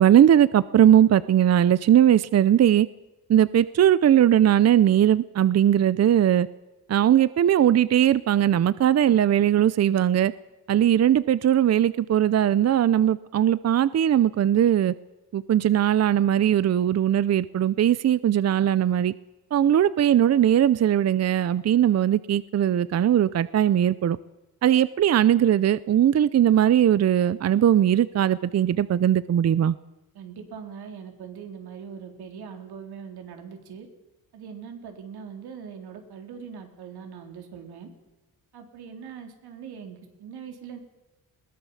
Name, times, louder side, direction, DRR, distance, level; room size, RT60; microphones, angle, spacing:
voice 1, 0.0-2.9 3.3-6.5 6.9-10.3 10.7-14.9 15.3-19.1 19.5-24.2 24.6-29.7, right 10 dB, 45° right, 0.6 m, -19 dB
voice 2, 30.1-33.9 34.3-37.9 38.5-40.8, right 7 dB, 90° right, 3.9 m, -41 dB
21.5 x 19.0 x 7.2 m
cardioid pair, 130°, 37 cm